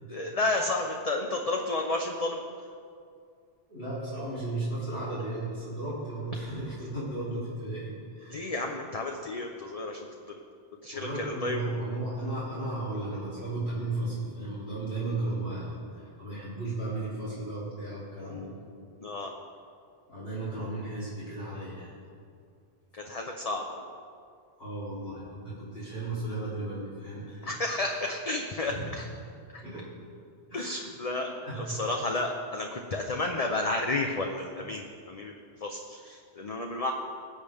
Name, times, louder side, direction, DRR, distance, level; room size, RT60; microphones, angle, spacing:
voice 1, 0.1-2.4 8.3-10.1 10.8-11.8 19.0-19.3 22.9-23.8 27.4-29.0 29.5-29.6 30.5-31.3 31.5-36.9, left 2 dB, 40° left, 2 dB, 0.8 m, -32 dB
voice 2, 3.7-8.5 10.9-18.6 20.1-21.9 24.6-27.5 27.8-28.0 28.7-28.9 29.6-29.9 30.5-30.7 31.2-31.8, right 2 dB, 70° left, -10 dB, 3.5 m, -35 dB
20.0 x 8.2 x 3.5 m, 2.3 s
omnidirectional pair, 1.1 m